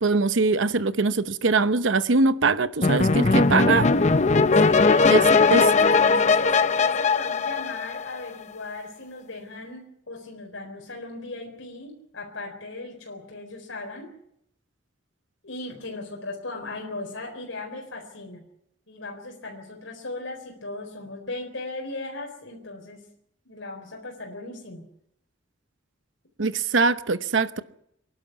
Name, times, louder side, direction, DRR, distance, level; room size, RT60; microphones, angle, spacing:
voice 1, 0.0-3.9 5.1-5.2 5.5-5.7 26.4-27.6, right 3 dB, 70° right, 0.9 m, -22 dB
sound 1, 2.8-8.3, left 4 dB, 35° left, 0.7 m, -19 dB
voice 2, 4.6-14.1 15.4-18.4 18.9-23.0 23.5-24.8, left 2 dB, 80° left, 4.2 m, -37 dB
25.5 x 11.5 x 9.5 m
head